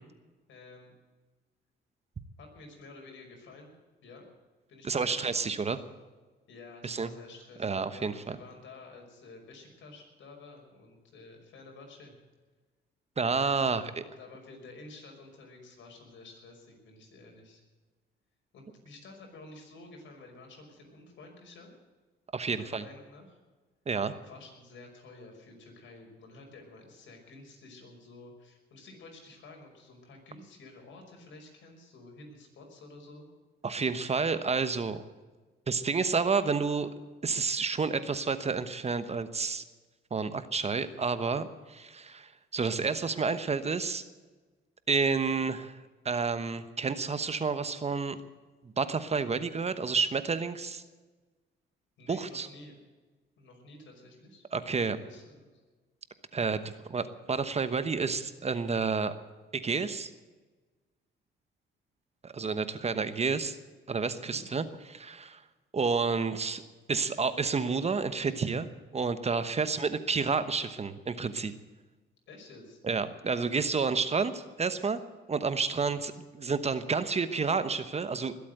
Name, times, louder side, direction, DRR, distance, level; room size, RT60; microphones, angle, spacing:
voice 1, 0.5-0.9 2.4-3.7 4.0-4.3 4.7-5.5 6.5-12.1 13.6-17.6 18.5-21.7 22.5-23.4 24.1-33.3 52.0-52.8 53.4-54.5 55.0-55.6 64.1-64.4 69.6-69.9 72.3-72.8, left 2 dB, 70° left, 2 dB, 5.6 m, -51 dB
voice 2, 4.8-5.8 6.8-7.1 7.6-8.4 13.2-13.9 22.3-22.8 23.9-24.1 33.6-35.0 35.7-36.9 37.2-39.6 40.1-44.0 44.9-45.8 46.0-48.2 48.8-50.8 52.1-52.5 54.5-55.0 56.3-59.1 59.5-60.1 62.2-63.6 63.9-65.4 65.7-66.6 66.9-68.7 68.9-71.5 72.8-75.0 75.3-78.4, right 5 dB, 30° right, 12 dB, 1.1 m, -30 dB
21.0 x 8.5 x 8.0 m, 1.3 s
cardioid pair, 90°, 20 cm